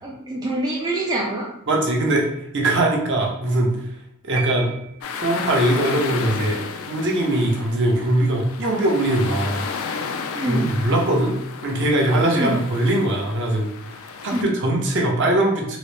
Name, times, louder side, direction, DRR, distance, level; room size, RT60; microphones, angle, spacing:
voice 1, 0.0-1.5 10.3-10.7 12.3-12.5 14.3-14.4, right 1 dB, 15° right, -3 dB, 0.3 m, -25 dB
voice 2, 1.7-2.3 2.5-3.7 4.2-4.7 5.1-6.6 6.9-9.7 10.4-11.3 11.6-13.7 14.2-15.8, right 1 dB, 55° right, -1 dB, 0.7 m, -21 dB
sound 1, 4.4-5.6, right 8 dB, 90° right, 0.5 m, -33 dB
sound 2, 5.0-14.4, left 5 dB, 65° left, 0.3 m, -32 dB
3.9 x 2.0 x 3.2 m, 0.76 s
head